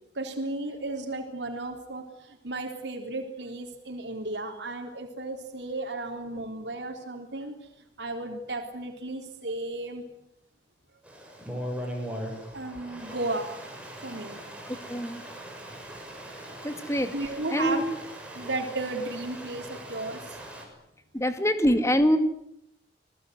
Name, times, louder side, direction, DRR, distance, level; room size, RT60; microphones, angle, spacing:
voice 1, 0.2-7.6 8.0-10.0 12.5-13.5 14.0-14.4 16.5-16.6 17.1-17.8 18.3-20.4, right 2 dB, 90° right, 2 dB, 3.8 m, -34 dB
Stream, 11.0-20.7, equal, 5° right, 6.7 m, -40 dB
voice 2, 14.7-15.2 16.6-17.1 17.5-17.8 21.1-22.2, equal, 15° left, 8 dB, 2.3 m, -24 dB
27.5 x 19.5 x 9.5 m, 0.79 s
head